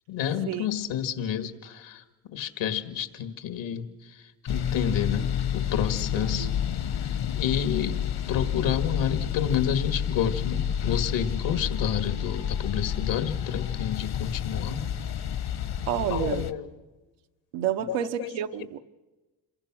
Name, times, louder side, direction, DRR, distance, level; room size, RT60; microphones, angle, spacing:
voice 1, 0.1-2.0 2.3-6.5 7.0-8.0 8.3-14.8 16.1-16.7 17.8-18.3, left 9 dB, 75° left, 2.0 m, -30 dB
sound 1, 4.5-16.5, left 9 dB, 55° left, 1.3 m, -29 dB
voice 2, 15.9-16.5 17.5-18.8, right 10 dB, 80° right, 1.0 m, -29 dB
26.5 x 21.5 x 6.2 m
cardioid pair, 90°, 45 cm